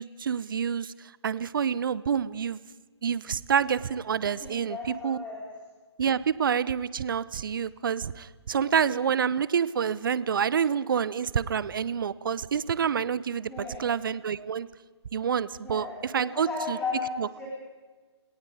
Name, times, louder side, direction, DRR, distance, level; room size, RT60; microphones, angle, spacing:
voice 1, 0.0-2.6 3.0-4.8 5.0-5.2 6.0-14.7 15.1-16.8 17.2-17.3, right 7 dB, 45° right, 18 dB, 0.8 m, -28 dB
voice 2, 4.3-5.4 8.5-8.7 13.5-13.9 15.6-16.0 16.2-17.5, left 4 dB, 10° left, -3 dB, 3.5 m, -35 dB
30.0 x 18.0 x 4.9 m, 1.4 s
figure-of-eight pair, 135°, 15 cm